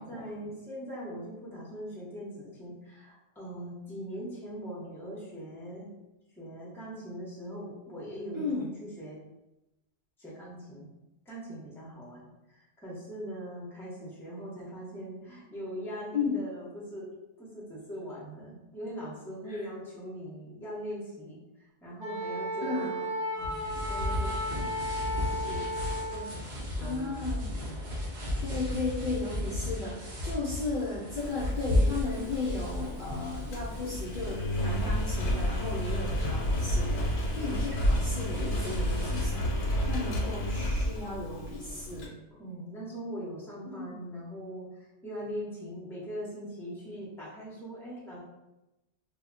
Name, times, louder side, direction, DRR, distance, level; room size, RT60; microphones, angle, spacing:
voice 1, 0.0-5.9 6.3-9.2 10.2-10.9 11.3-17.1 17.4-21.4 21.8-24.7 25.1-25.7 26.1-27.2 27.7-27.9 34.6-35.0 37.4-37.8 42.3-48.2, equal, 5° left, -6 dB, 0.6 m, -41 dB
voice 2, 8.3-8.7 16.1-16.4 19.5-19.7 22.6-22.9 26.8-27.5 28.4-42.1 43.6-43.9, left 3 dB, 60° left, -6 dB, 0.6 m, -35 dB
Wind instrument woodwind instrument, 22.0-26.3, equal, 70° right, 1.2 m, -34 dB
sound 1, 23.4-39.4, left 1 dB, 45° right, 0.7 m, -35 dB
Engine, 31.2-42.1, equal, 80° left, 0.9 m, -31 dB
2.1 x 2.1 x 3.6 m, 0.96 s
omnidirectional pair, 1.2 m